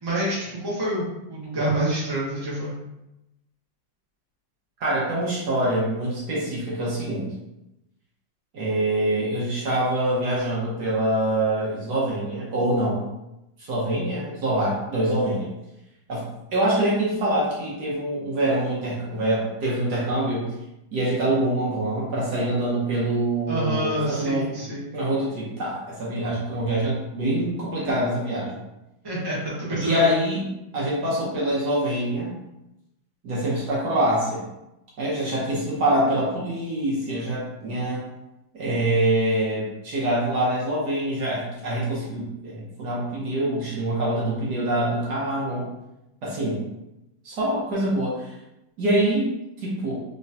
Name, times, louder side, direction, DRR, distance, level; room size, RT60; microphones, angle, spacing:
voice 1, 0.0-2.7 23.5-24.9 29.0-30.0, right 1 dB, 15° right, -7 dB, 1.0 m, -27 dB
voice 2, 4.8-7.3 8.5-13.1 13.6-15.5 16.1-16.3 16.5-20.5 20.9-24.7 24.9-28.5 29.8-30.5 30.7-32.3 33.2-34.4 35.0-38.0 38.5-45.7 46.2-46.6 47.2-48.3 48.8-49.3 49.6-50.0, right 1 dB, 60° right, -6 dB, 1.5 m, -25 dB
3.6 x 3.2 x 2.7 m, 0.91 s
omnidirectional pair, 2.1 m